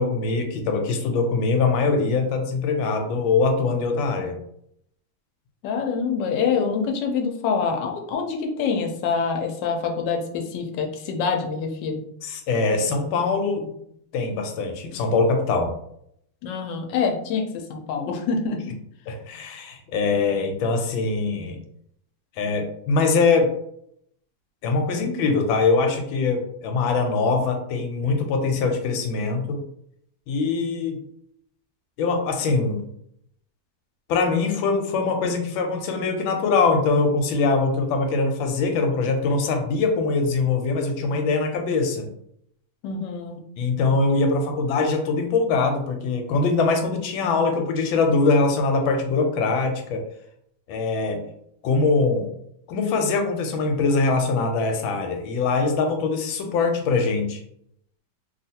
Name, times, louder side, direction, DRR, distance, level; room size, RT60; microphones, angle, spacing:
voice 1, 0.0-4.4 12.2-13.7 14.1-15.7 19.1-21.6 22.4-23.5 24.6-29.6 30.3-31.0 32.0-32.8 34.1-42.1 43.6-50.0 50.7-51.2 51.6-52.3 52.7-57.4, left 4 dB, 90° left, 4 dB, 1.4 m, -22 dB
voice 2, 5.6-12.0 16.4-18.6 42.8-43.4, left 5 dB, 70° left, 3 dB, 1.2 m, -26 dB
3.3 x 2.4 x 2.7 m, 0.72 s
omnidirectional pair, 2.1 m